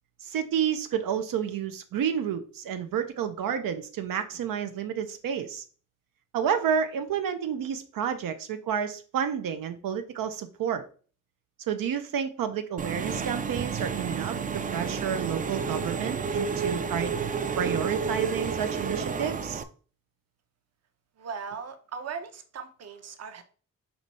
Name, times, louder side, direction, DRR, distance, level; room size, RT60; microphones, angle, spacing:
voice 1, 0.2-5.6 6.3-10.8 11.7-14.4 14.7-17.1 17.6-19.6, right 8 dB, 80° right, 8 dB, 0.7 m, -30 dB
Engine / Mechanisms, 12.8-19.6, right 5 dB, 25° right, 0.3 m, -31 dB
voice 2, 21.2-23.4, right 6 dB, 50° right, 8 dB, 0.8 m, -38 dB
5.8 x 3.1 x 5.3 m, 0.40 s
wide cardioid pair, 170°, 33 cm